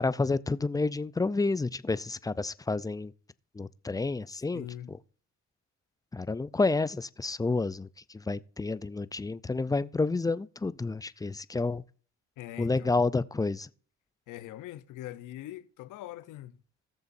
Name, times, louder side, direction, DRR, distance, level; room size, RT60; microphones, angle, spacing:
voice 1, 0.0-3.1 3.5-5.0 6.1-11.8 12.6-13.7, left 3 dB, 10° left, 0.4 m, -30 dB
voice 2, 4.5-4.9 12.4-12.9 14.3-16.6, left 13 dB, 90° left, 0.8 m, -42 dB
19.0 x 6.9 x 2.6 m
cardioid pair, 90°, 30 cm